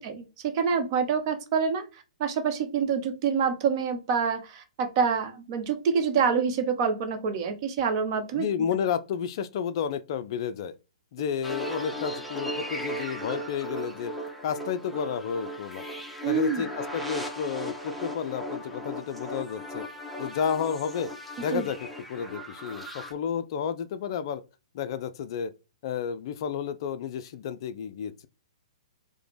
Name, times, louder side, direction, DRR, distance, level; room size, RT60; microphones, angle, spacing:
voice 1, 0.0-8.5 16.2-16.6 21.5-21.6, right 6 dB, 40° right, 0.8 m, -27 dB
voice 2, 8.4-10.7 11.1-14.1 14.4-15.9 16.2-19.8 20.2-21.1 21.4-21.8 22.1-24.4 24.7-25.5 25.8-28.3, left 7 dB, 45° left, 0.3 m, -31 dB
sound 1, 11.4-23.1, equal, ahead, 0.7 m, -37 dB
4.8 x 2.1 x 3.2 m
figure-of-eight pair, 120°, 4 cm